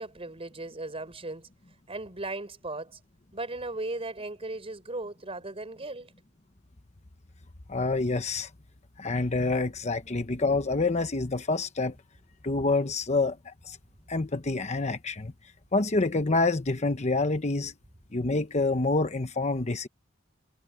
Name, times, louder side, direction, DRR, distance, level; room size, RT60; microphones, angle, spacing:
voice 1, 0.0-1.5 1.9-3.0 3.3-6.1, right 2 dB, 30° right, 4.2 m, -37 dB
voice 2, 7.7-8.5 9.0-11.9 12.4-13.8 14.1-15.3 15.7-17.7 18.1-19.9, left 3 dB, 35° left, 1.0 m, -27 dB
head